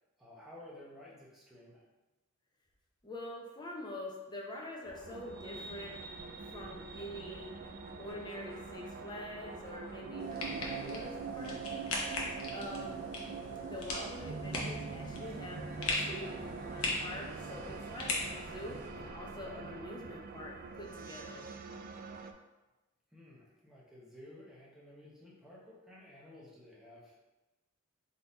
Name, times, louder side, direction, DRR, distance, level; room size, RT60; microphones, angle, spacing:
voice 1, 0.2-1.8 23.1-27.1, left 1 dB, ahead, -6 dB, 0.9 m, -54 dB
voice 2, 3.0-6.0 6.5-7.5 8.0-11.6 12.5-13.1 13.6-21.5, left 1 dB, 20° left, -1 dB, 0.7 m, -45 dB
sound 1, 4.8-19.9, equal, 45° left, 1.1 m, -54 dB
sound 2, 5.0-22.3, right 5 dB, 45° right, 0.3 m, -44 dB
sound 3, 10.2-18.9, left 2 dB, 80° left, 0.9 m, -40 dB
3.8 x 2.9 x 3.9 m, 1.1 s
head